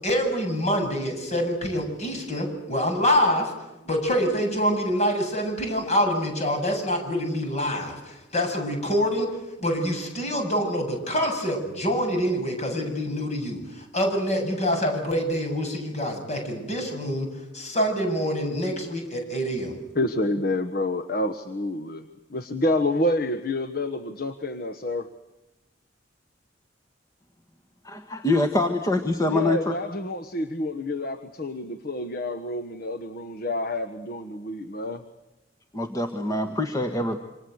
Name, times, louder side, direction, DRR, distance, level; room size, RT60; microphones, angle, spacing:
voice 1, 0.0-3.5 3.8-9.3 9.6-17.3 17.5-19.7, equal, 40° left, 3 dB, 8.0 m, -26 dB
voice 2, 19.9-25.1 29.3-35.0, left 1 dB, 55° left, 9 dB, 1.3 m, -28 dB
voice 3, 27.8-29.8 35.7-37.2, left 2 dB, 20° left, 5 dB, 1.6 m, -25 dB
28.0 x 26.0 x 8.1 m, 1.0 s
head